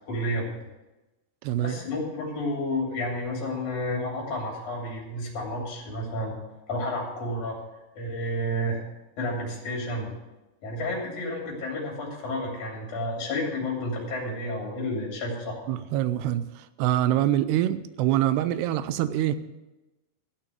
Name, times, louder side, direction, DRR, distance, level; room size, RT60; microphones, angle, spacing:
voice 1, 0.1-0.4 1.6-6.3 6.7-7.6 8.0-8.8 9.2-10.1 10.6-15.6, left 1 dB, 50° left, -1 dB, 4.4 m, -31 dB
voice 2, 1.4-1.8 15.7-19.4, right 12 dB, 90° right, 13 dB, 2.8 m, -25 dB
13.5 x 5.9 x 9.2 m, 1.0 s
omnidirectional pair, 4.6 m